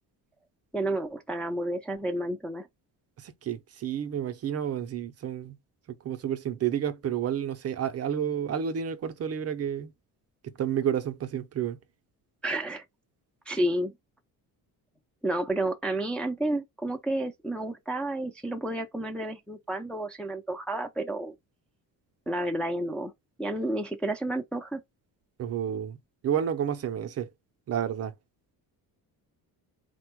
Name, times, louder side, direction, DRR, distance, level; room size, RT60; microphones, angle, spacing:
voice 1, 0.7-2.7 12.4-12.8 13.5-13.9 15.2-21.3 22.3-23.1 23.4-24.8, right 1 dB, 5° left, 0.4 m, -30 dB
voice 2, 3.2-5.6 6.0-9.9 10.4-11.8 25.4-26.0 26.2-27.3 27.7-28.1, right 9 dB, 40° right, 0.6 m, -30 dB
4.3 x 2.1 x 4.4 m
cardioid pair, 160°, 37 cm